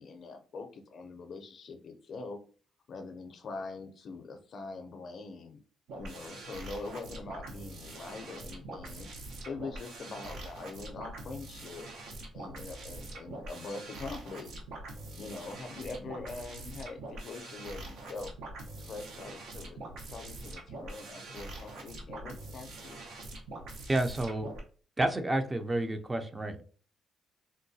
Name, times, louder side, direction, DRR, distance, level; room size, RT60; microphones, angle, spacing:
voice 1, 0.0-2.4 2.9-5.6 5.9-9.1 9.4-11.9 12.3-14.5 15.2-18.3 18.8-19.8 20.1-23.0, left 3 dB, 55° left, 7 dB, 0.5 m, -43 dB
sound 1, 5.9-24.6, right 2 dB, 80° right, 0.8 m, -44 dB
voice 2, 23.9-24.5 25.0-26.6, right 1 dB, 20° right, 7 dB, 0.4 m, -30 dB
3.7 x 2.2 x 2.6 m, 0.42 s
cardioid pair, 90°, 0 cm